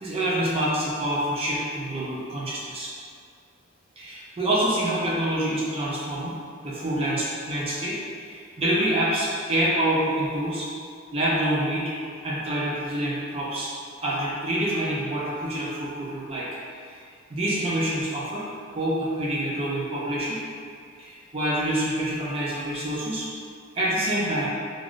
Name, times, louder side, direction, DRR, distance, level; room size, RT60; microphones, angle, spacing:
voice 1, 0.0-2.9 4.0-6.4 6.6-10.7 11.1-11.9 12.2-13.7 14.0-16.5 16.9-17.0 17.3-18.5 18.7-20.4 21.0-23.3 23.7-24.5, right 1 dB, 30° right, -6 dB, 0.4 m, -26 dB
3.3 x 2.4 x 2.4 m, 2.3 s
head